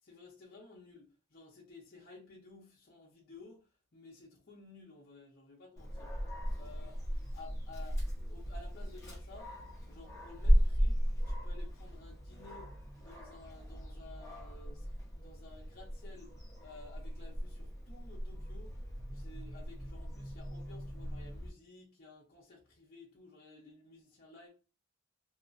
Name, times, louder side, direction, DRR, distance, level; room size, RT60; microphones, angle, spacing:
voice 1, 0.0-6.1 6.5-7.1 7.3-9.6 9.9-14.9 15.1-18.8 19.1-24.5, left 3 dB, 50° left, 0.7 m, -55 dB
Dog, 5.8-21.5, equal, 15° left, 0.8 m, -36 dB
2.8 x 2.3 x 2.5 m
head